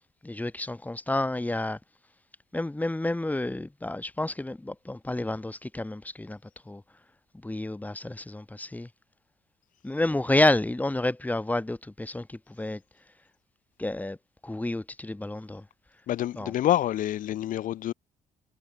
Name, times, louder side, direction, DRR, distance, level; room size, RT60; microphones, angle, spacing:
voice 1, 0.2-1.8 2.5-6.4 6.7-6.8 7.4-8.9 9.8-12.3 12.6-12.8 13.8-14.2 14.4-15.6 16.4-16.5, left 2 dB, 10° left, 5.4 m, -29 dB
voice 2, 16.1-17.9, left 12 dB, 75° left, 6.5 m, -27 dB
cardioid pair, 80°, 14 cm